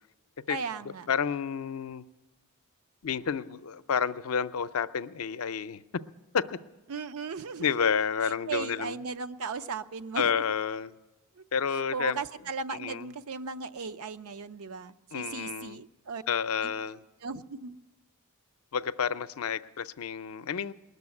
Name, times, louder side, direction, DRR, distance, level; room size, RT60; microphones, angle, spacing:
voice 1, 0.5-1.1 6.9-7.9 8.2-10.4 11.4-11.5 11.9-16.2 16.6-16.7 17.2-17.8, right 4 dB, 85° right, 11 dB, 0.6 m, -37 dB
voice 2, 1.1-2.0 3.0-5.8 6.3-6.4 7.6-9.0 10.2-10.9 11.5-12.2 12.7-13.1 15.1-15.8 16.3-17.0 18.7-20.7, left 7 dB, 75° left, 13 dB, 0.5 m, -30 dB
20.0 x 6.8 x 9.6 m, 1.1 s
head